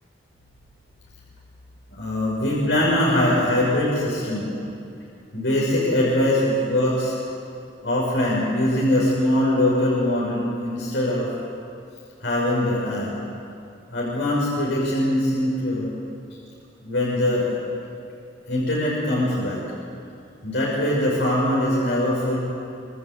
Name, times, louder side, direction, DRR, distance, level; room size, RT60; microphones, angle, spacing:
voice 1, 2.0-4.5 5.3-7.2 7.8-11.3 12.2-13.1 13.9-15.9 16.8-17.5 18.5-19.6 20.4-22.4, left 1 dB, 85° left, -5 dB, 6.2 m, -22 dB
26.0 x 26.0 x 8.3 m, 2.6 s
head